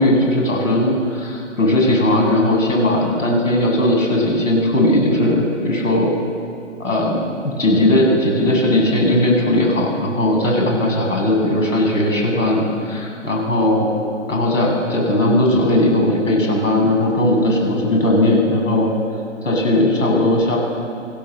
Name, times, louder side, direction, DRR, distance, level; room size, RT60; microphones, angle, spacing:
voice 1, 0.0-6.1 6.8-13.9 14.3-18.9 19.4-20.6, left 1 dB, 85° left, 0 dB, 7.6 m, -17 dB
25.5 x 16.0 x 7.6 m, 2.5 s
hypercardioid pair, 155°, 38 cm